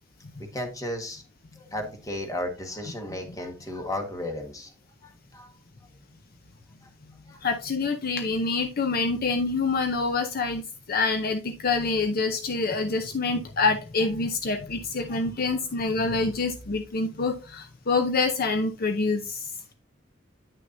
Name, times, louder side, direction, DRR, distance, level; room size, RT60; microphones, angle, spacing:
voice 1, 0.5-1.2 1.6-4.7 5.0-5.5 7.3-7.4 15.1-15.2, left 1 dB, 20° left, 4 dB, 1.4 m, -34 dB
voice 2, 7.4-10.6 10.9-19.5, left 3 dB, 50° left, 8 dB, 0.7 m, -26 dB
9.3 x 6.4 x 2.6 m, 0.31 s
head